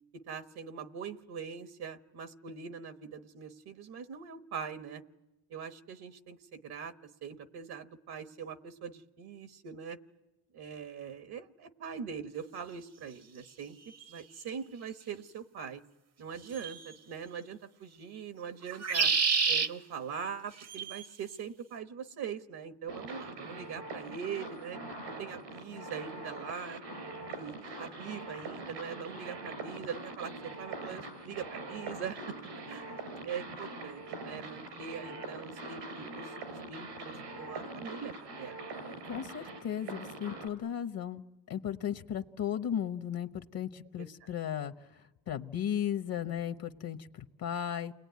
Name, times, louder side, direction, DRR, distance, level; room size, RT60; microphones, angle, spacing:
voice 1, 0.1-5.0 5.5-6.9 7.2-10.0 10.5-13.8 14.1-15.8 16.2-19.1 19.5-24.8 25.2-26.8 27.3-32.3 32.7-33.0 33.2-39.0 44.0-44.1, right 7 dB, 65° right, 9 dB, 1.3 m, -42 dB
sound 1, 14.0-14.1 16.5-16.9 18.7-19.7 20.6-21.1, right 5 dB, 35° right, 0.9 m, -28 dB
sound 2, 22.9-40.5, right 2 dB, 80° right, 5.1 m, -43 dB
voice 2, 39.0-47.9, left 9 dB, 55° left, 8 dB, 1.1 m, -36 dB
29.0 x 20.5 x 9.4 m, 1.0 s
cardioid pair, 125°, 42 cm